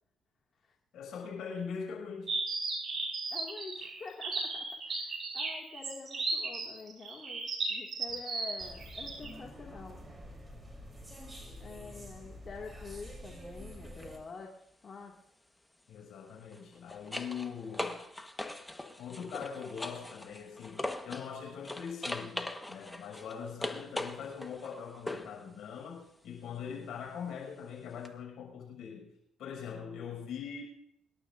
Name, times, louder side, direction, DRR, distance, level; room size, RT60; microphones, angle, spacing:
voice 1, 0.9-2.4 15.9-18.0 19.0-29.1 29.4-30.6, left 6 dB, 75° left, 1 dB, 6.5 m, -42 dB
sound 1, 2.3-9.3, right 3 dB, 45° right, 6.9 m, -35 dB
voice 2, 3.3-10.0 11.6-15.1, left 4 dB, 45° left, -1 dB, 2.3 m, -47 dB
sound 2, 8.6-14.2, equal, 15° right, 3.8 m, -48 dB
sound 3, 13.8-14.1 16.4-21.3 21.6-25.4 28.0-28.1, left 1 dB, 10° left, 1.4 m, -40 dB
25.0 x 12.0 x 2.7 m, 0.74 s
cardioid pair, 80°, 0 cm